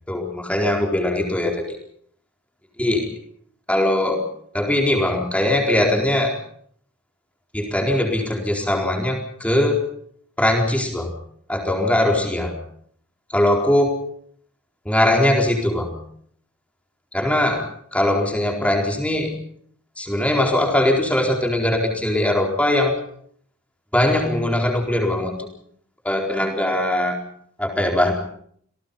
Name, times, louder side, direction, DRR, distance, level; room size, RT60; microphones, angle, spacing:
voice 1, 0.1-1.8 2.8-3.1 3.7-4.2 4.5-6.4 7.5-9.8 10.4-11.1 11.5-12.6 13.3-14.0 14.8-16.0 17.1-17.6 17.9-19.3 20.0-22.9 23.9-25.5 26.0-27.2 27.6-28.1, left 1 dB, 5° left, 2 dB, 4.1 m, -20 dB
28.0 x 18.0 x 5.6 m, 0.62 s
head